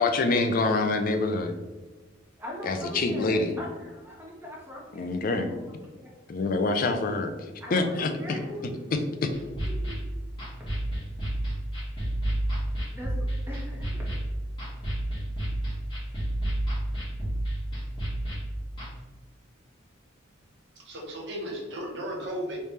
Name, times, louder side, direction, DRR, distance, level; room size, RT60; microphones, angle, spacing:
voice 1, 0.0-1.5 2.6-3.6 5.0-5.5 6.3-7.3 7.7-8.4 9.2-9.3, left 3 dB, 45° left, 6 dB, 0.4 m, -26 dB
voice 2, 2.4-5.1 5.3-5.5 6.0-6.1 7.6-8.8 9.8-9.9 12.9-13.1 13.5-14.1, left 1 dB, 10° right, -3 dB, 0.8 m, -39 dB
sound 1, 9.3-18.9, right 1 dB, 25° left, 1.2 m, -31 dB
voice 3, 20.8-22.6, equal, 60° right, 0 dB, 0.7 m, -35 dB
3.3 x 3.2 x 2.7 m, 1.2 s
head